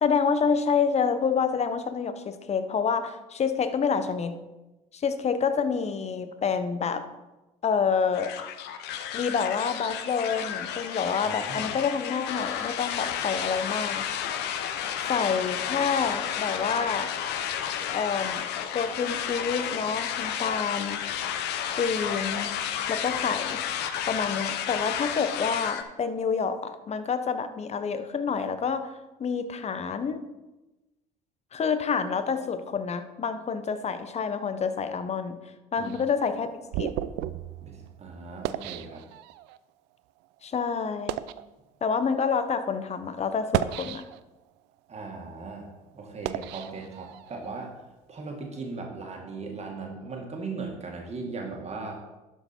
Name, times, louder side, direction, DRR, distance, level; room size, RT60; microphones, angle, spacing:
voice 1, 0.0-4.3 4.9-7.0 7.6-8.3 9.1-14.0 15.0-17.1 17.9-18.4 18.7-21.0 21.8-22.5 22.9-23.6 24.1-28.9 29.2-30.2 31.5-35.4 35.7-36.5 36.8-36.9 40.4-41.2 41.8-44.1, left 6 dB, 35° left, 10 dB, 0.9 m, -28 dB
sound 1, 8.1-25.8, left 9 dB, 60° left, 0.8 m, -32 dB
voice 2, 11.2-11.7 35.8-35.9 37.6-39.0 44.9-45.7 45.9-47.8 48.1-52.0, right 3 dB, 35° right, 1 dB, 2.0 m, -38 dB
sound 2, 35.8-39.6 40.3-40.4 40.9-41.5 42.2-42.4 43.3-44.4 44.9-47.5, right 13 dB, 65° right, 0.4 m, -34 dB
12.0 x 4.7 x 4.4 m, 1.1 s
hypercardioid pair, 65°, 19 cm